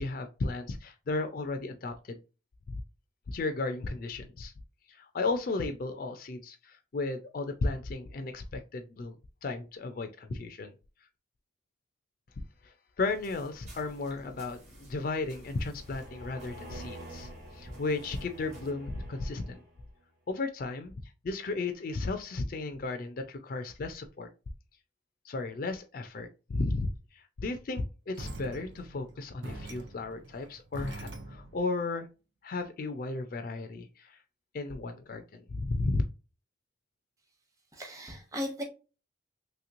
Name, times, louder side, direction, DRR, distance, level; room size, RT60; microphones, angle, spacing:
voice 1, 0.0-2.2 2.7-2.8 3.3-4.5 4.9-9.2 9.4-10.7 12.6-19.6 20.3-20.9 21.2-24.3 25.2-32.1 32.4-34.2 34.5-36.0, left 3 dB, 50° left, 0.4 m, -34 dB
sound 1, 13.0-18.7, equal, 35° right, 1.1 m, -52 dB
sound 2, 15.3-20.0, right 1 dB, 60° right, 1.3 m, -48 dB
sound 3, 28.2-31.7, right 1 dB, 85° right, 0.7 m, -43 dB
voice 2, 37.7-38.6, left 1 dB, 15° right, 0.8 m, -37 dB
3.1 x 2.9 x 2.5 m
head